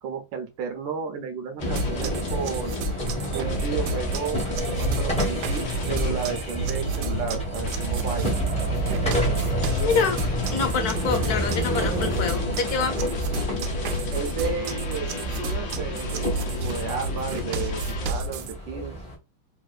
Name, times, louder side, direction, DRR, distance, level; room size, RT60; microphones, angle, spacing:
voice 1, 0.0-2.8 3.3-4.4 4.7-8.4 14.1-19.0, right 6 dB, 70° right, 1.2 m, -33 dB
sound 1, 1.6-18.1, right 2 dB, 80° left, 0.6 m, -31 dB
sound 2, 1.6-19.2, left 1 dB, 5° left, 0.5 m, -30 dB
sound 3, 1.8-18.5, right 1 dB, 90° right, 1.5 m, -33 dB
voice 2, 9.8-10.2 10.5-13.0, left 5 dB, 60° left, 1.1 m, -26 dB
3.6 x 2.4 x 2.3 m
omnidirectional pair, 2.3 m